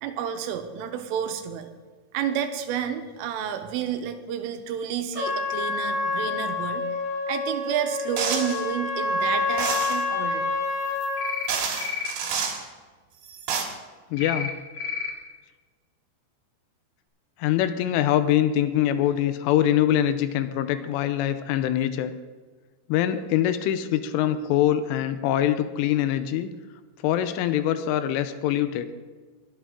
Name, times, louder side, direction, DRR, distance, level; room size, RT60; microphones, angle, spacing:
voice 1, 0.0-1.7 2.1-6.8 7.3-10.5, right 9 dB, 90° right, 7 dB, 3.4 m, -30 dB
Trumpet, 5.1-11.4, left 3 dB, 15° left, 3.9 m, -28 dB
sound 1, 8.2-8.6 9.6-10.0 11.0-11.1 11.5-12.6 13.2-13.6, right 6 dB, 60° right, 3.0 m, -28 dB
sound 2, 11.2-11.5 11.8-12.1 14.2-14.5 14.8-15.1, left 6 dB, 45° left, 1.2 m, -30 dB
voice 2, 14.1-14.5 17.4-22.1 22.9-26.5 27.0-28.9, left 11 dB, 85° left, 11 dB, 3.2 m, -23 dB
21.5 x 8.8 x 3.7 m, 1.4 s
omnidirectional pair, 5.7 m